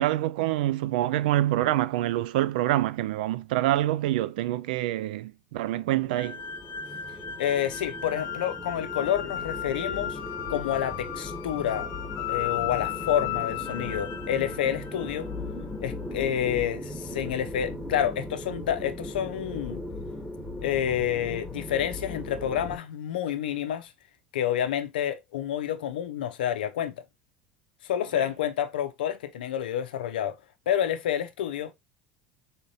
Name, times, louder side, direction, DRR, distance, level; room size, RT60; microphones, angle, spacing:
voice 1, 0.0-6.4 28.2-28.3, right 14 dB, 75° right, 0.4 m, -26 dB
sound 1, 5.7-22.8, left 1 dB, 5° left, 1.2 m, -38 dB
sound 2, 6.1-15.3, left 11 dB, 60° left, 0.9 m, -35 dB
voice 2, 7.4-10.2 10.5-11.9 12.2-15.3 15.8-19.8 20.6-23.9 24.3-26.9 27.8-30.4 30.7-31.7, left 10 dB, 85° left, 0.6 m, -29 dB
4.0 x 3.7 x 2.5 m
hypercardioid pair, 80°, 5 cm